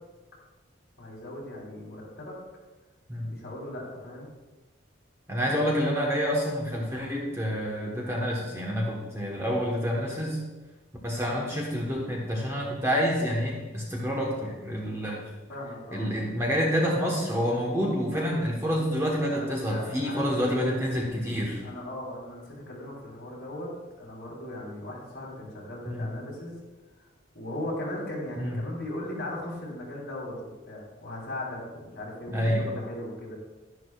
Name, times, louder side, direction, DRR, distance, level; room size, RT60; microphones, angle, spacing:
voice 1, 1.0-2.3 3.2-4.3 15.5-16.1 19.3-20.7 21.6-23.7 24.0-26.6 27.3-33.4, left 1 dB, 50° left, -4 dB, 3.5 m, -38 dB
voice 2, 5.3-10.4 11.0-15.2 15.9-21.6 25.8-26.1 28.4-28.6 32.3-32.6, equal, 15° right, -2 dB, 1.2 m, -28 dB
11.0 x 11.0 x 2.4 m, 1.2 s
head